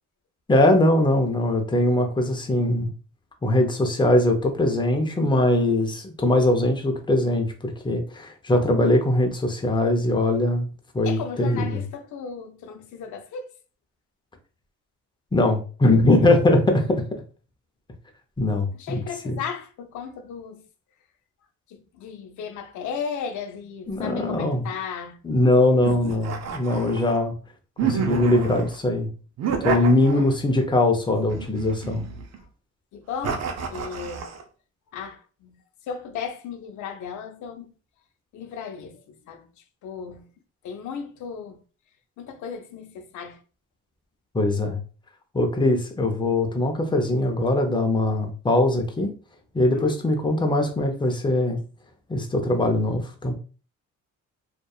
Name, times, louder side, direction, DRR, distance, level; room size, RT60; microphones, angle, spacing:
voice 1, 0.5-2.9 3.4-10.7 10.9-11.8 15.3-17.0 18.4-19.4 23.9-24.7 25.2-27.3 27.8-29.1 29.6-32.1 44.3-44.8 45.3-49.1 49.5-51.6 52.1-53.3, left 1 dB, 15° left, 0.6 m, -21 dB
voice 2, 11.0-13.5 18.7-20.6 21.9-25.2 29.7-29.9 30.1-30.3 32.9-33.4 33.7-34.3 34.9-35.5 35.9-37.7 38.3-39.0 39.3-39.5 39.8-40.3 40.6-41.6 42.2-43.4 49.7-50.0, left 6 dB, 75° left, 0.6 m, -35 dB
sound 1, 25.8-27.2 27.8-28.8 29.4-30.5 31.3-32.4 33.2-34.4, right 6 dB, 60° right, 0.6 m, -29 dB
2.6 x 2.3 x 2.3 m
cardioid pair, 90°, 30 cm